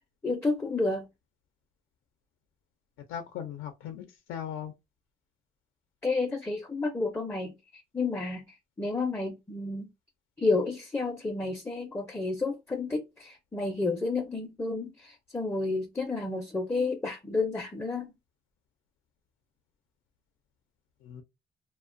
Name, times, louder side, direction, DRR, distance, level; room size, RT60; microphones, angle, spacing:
voice 1, 0.2-1.1 6.0-8.5 8.8-9.9 10.4-18.1, left 3 dB, 10° left, 0.4 m, -31 dB
voice 2, 3.1-4.7 21.0-21.2, left 9 dB, 90° left, 0.4 m, -38 dB
2.4 x 2.1 x 2.4 m
cardioid pair, 90°, 20 cm